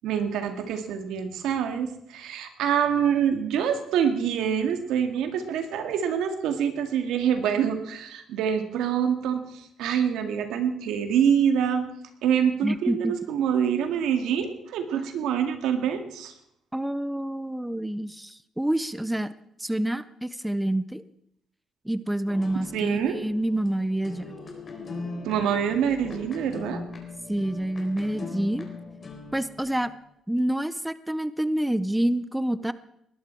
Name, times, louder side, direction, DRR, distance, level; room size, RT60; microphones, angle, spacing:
voice 1, 0.0-11.8 12.2-16.3 22.7-23.2 25.2-26.8, right 8 dB, 90° right, 7 dB, 2.0 m, -26 dB
voice 2, 12.6-13.1 16.7-19.3 19.6-21.0 21.8-24.3 27.3-28.7 29.3-29.9 30.3-32.7, right 1 dB, 5° right, 15 dB, 0.7 m, -27 dB
sound 1, 22.3-30.0, left 3 dB, 40° left, 3.8 m, -40 dB
20.5 x 11.5 x 4.6 m, 0.76 s
cardioid pair, 90°, 0 cm